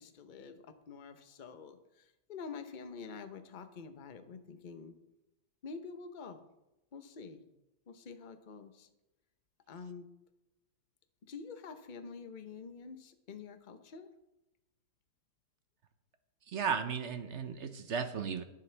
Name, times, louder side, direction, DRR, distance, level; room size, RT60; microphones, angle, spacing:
voice 1, 0.0-4.9 5.6-6.5 6.9-7.4 7.9-8.9 9.7-10.1 11.3-14.1, left 5 dB, 40° left, 8 dB, 0.8 m, -47 dB
voice 2, 16.5-18.4, right 6 dB, 55° right, 9 dB, 0.8 m, -35 dB
20.5 x 7.2 x 3.4 m, 0.95 s
omnidirectional pair, 1.8 m